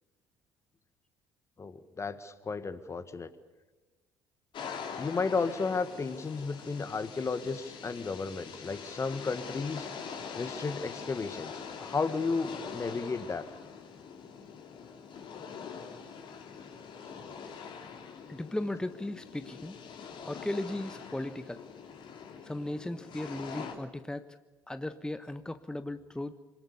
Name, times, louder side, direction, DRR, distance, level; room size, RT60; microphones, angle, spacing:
voice 1, 1.6-3.3 5.0-9.9 10.4-11.5 11.8-13.4, left 4 dB, 25° left, 12 dB, 1.7 m, -33 dB
sound 1, 4.5-23.8, left 6 dB, 50° left, 3.2 m, -44 dB
voice 2, 18.3-19.8 20.2-21.6 22.4-24.4 24.7-26.4, left 1 dB, 5° left, 11 dB, 1.1 m, -36 dB
26.5 x 19.0 x 7.0 m, 1.2 s
figure-of-eight pair, 55°, 10 cm